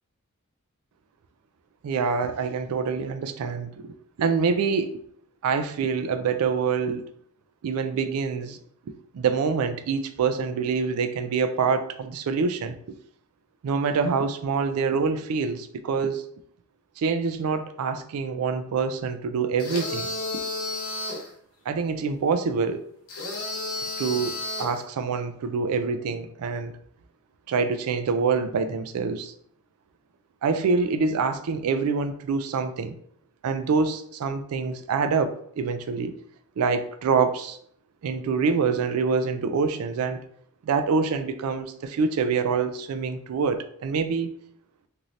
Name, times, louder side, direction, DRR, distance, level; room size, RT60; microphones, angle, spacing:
voice 1, 1.8-4.9 5.4-7.0 7.6-8.6 8.9-12.8 13.6-16.3 17.0-20.1 21.7-22.8 24.0-26.7 27.5-29.3 30.4-32.9 33.4-36.1 36.6-37.6 38.0-40.2 40.6-44.3, right 5 dB, 75° right, 0.3 m, -26 dB
sound 1, 19.6-21.3 23.1-24.8, left 2 dB, 85° left, 0.9 m, -32 dB
3.1 x 2.7 x 2.5 m
head